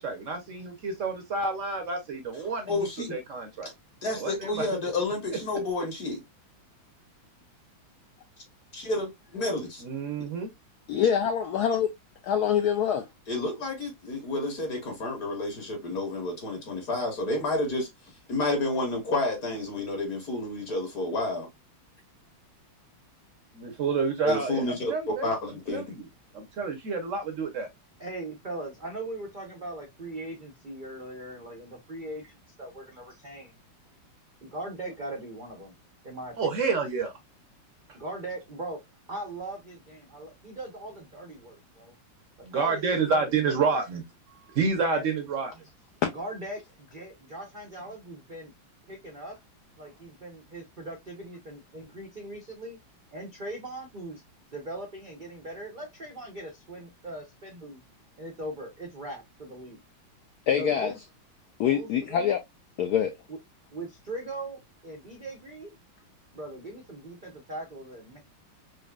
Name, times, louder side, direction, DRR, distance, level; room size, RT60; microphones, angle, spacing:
voice 1, 0.0-2.7 3.1-3.7 4.2-4.6 9.8-10.5 23.5-25.3 25.7-26.0 26.3-27.7 36.4-37.1 42.4-44.0 44.5-45.5, right 4 dB, 65° right, 0.8 m, -29 dB
voice 2, 2.7-3.2 4.0-6.2 8.7-9.8 13.3-17.9 18.3-21.5 24.2-25.9, left 2 dB, 55° left, 1.4 m, -30 dB
voice 3, 10.9-11.9 12.2-13.1 46.0-46.1 60.5-60.9 61.6-62.4 62.8-63.1, left 8 dB, 80° left, 0.9 m, -25 dB
voice 4, 28.0-32.2 32.6-33.5 34.4-35.7 36.0-36.6 37.9-38.8 39.1-41.9 42.4-43.8 44.7-45.1 46.0-48.5 48.9-49.4 49.8-52.8 53.1-54.2 54.5-57.8 58.2-59.8 60.5-61.0 61.7-62.3 63.3-63.4 63.7-65.8 66.3-68.3, right 1 dB, 80° right, 0.4 m, -40 dB
4.9 x 2.6 x 2.2 m
omnidirectional pair, 2.2 m